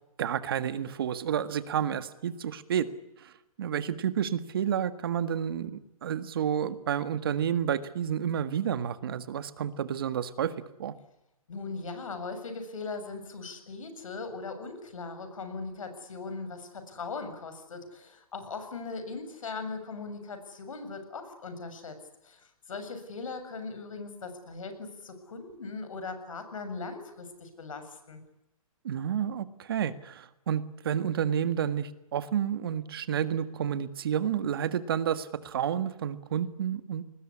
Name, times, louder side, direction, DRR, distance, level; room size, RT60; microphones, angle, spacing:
voice 1, 0.2-2.9 3.2-3.3 3.6-10.5 10.8-10.9 28.8-37.0, right 9 dB, 40° right, 12 dB, 1.7 m, -30 dB
voice 2, 11.5-22.0 22.2-28.2, left 4 dB, 65° left, 9 dB, 7.1 m, -39 dB
25.0 x 20.5 x 9.7 m, 0.89 s
hypercardioid pair, 170°, 18 cm